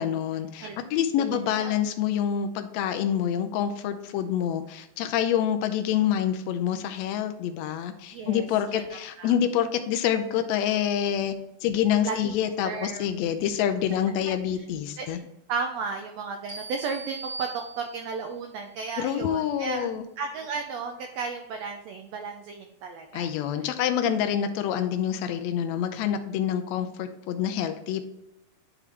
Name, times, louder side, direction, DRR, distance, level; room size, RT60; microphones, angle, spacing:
voice 1, 0.0-11.3 11.6-15.2 19.0-20.0 23.1-28.0, left 9 dB, 85° left, 8 dB, 1.5 m, -27 dB
voice 2, 1.2-1.7 8.1-9.3 12.0-12.3 12.6-13.1 15.0-17.5 17.8-19.9 20.2-23.3, right 5 dB, 85° right, 4 dB, 1.5 m, -34 dB
sound 1, 16.5-18.3, right 3 dB, 40° right, 1.0 m, -40 dB
10.0 x 3.6 x 3.3 m, 0.86 s
omnidirectional pair, 3.7 m